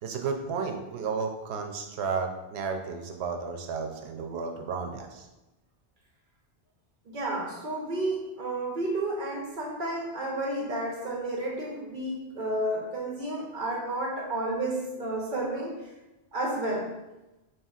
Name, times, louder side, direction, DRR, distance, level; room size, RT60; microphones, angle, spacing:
voice 1, 0.0-5.3, right 5 dB, 90° right, 4 dB, 0.8 m, -33 dB
voice 2, 7.1-15.7 16.3-16.9, right 1 dB, 55° right, -1 dB, 0.9 m, -31 dB
5.6 x 2.8 x 2.4 m, 1.0 s
omnidirectional pair, 1.1 m